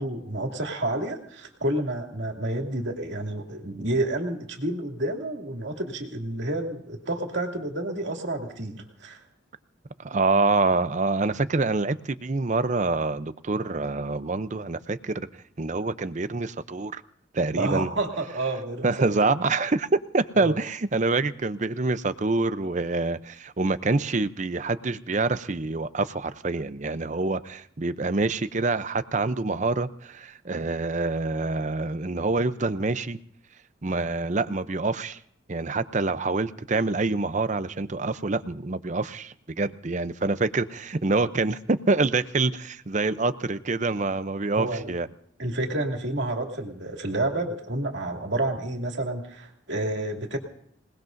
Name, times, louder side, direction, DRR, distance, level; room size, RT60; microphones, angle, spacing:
voice 1, 0.0-9.2 17.5-19.3 20.4-20.6 44.5-44.9 45.4-50.4, right 1 dB, 65° right, 1 dB, 2.5 m, -29 dB
voice 2, 10.0-15.1 15.6-17.0 17.3-17.9 18.8-33.2 33.8-35.2 35.5-45.1, right 3 dB, 40° right, 12 dB, 0.6 m, -26 dB
27.0 x 19.0 x 2.6 m, 0.65 s
head